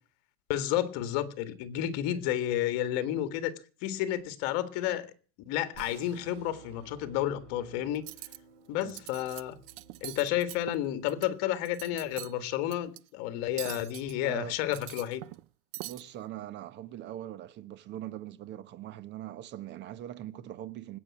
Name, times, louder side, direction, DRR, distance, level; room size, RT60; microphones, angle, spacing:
voice 1, 0.5-3.5 3.8-5.1 5.5-8.1 8.7-9.6 10.0-15.2, left 12 dB, 55° left, 1.9 m, -31 dB
sound 1, 5.7-12.2, right 5 dB, 80° right, 6.4 m, -55 dB
Cutlery silverware, 7.9-8.4 8.8-9.4 9.7-11.3 11.6-12.3 12.7-13.0 13.6-14.1 14.6-15.4 15.7-16.0, right 19 dB, 60° right, 0.7 m, -43 dB
voice 2, 14.2-14.6 15.8-21.0, right 12 dB, 35° right, 1.2 m, -41 dB
19.5 x 8.5 x 8.6 m
supercardioid pair, 155°, 30 cm